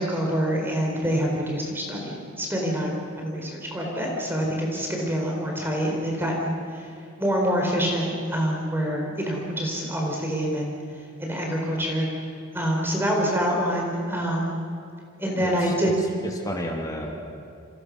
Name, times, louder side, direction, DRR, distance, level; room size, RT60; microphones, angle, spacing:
voice 1, 0.0-6.8 7.2-10.7 11.2-12.3 12.5-14.6 15.2-15.9, equal, 10° right, -1 dB, 4.3 m, -26 dB
voice 2, 15.4-17.2, equal, 15° left, 1 dB, 2.6 m, -33 dB
29.5 x 27.5 x 6.5 m, 2.6 s
head